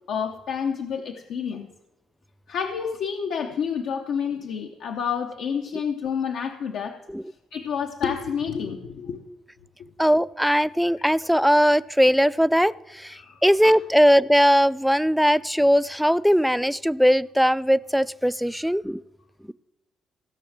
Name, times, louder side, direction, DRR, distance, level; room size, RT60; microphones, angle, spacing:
voice 1, 0.1-1.7 2.5-7.0 7.5-9.2 13.1-13.4 13.6-13.7, left 7 dB, 80° left, 4 dB, 0.9 m, -29 dB
voice 2, 10.0-12.7 13.0-13.1 13.4-19.0, equal, ahead, 17 dB, 0.4 m, -19 dB
16.0 x 6.4 x 7.3 m, 0.96 s
cardioid pair, 90°, 0 cm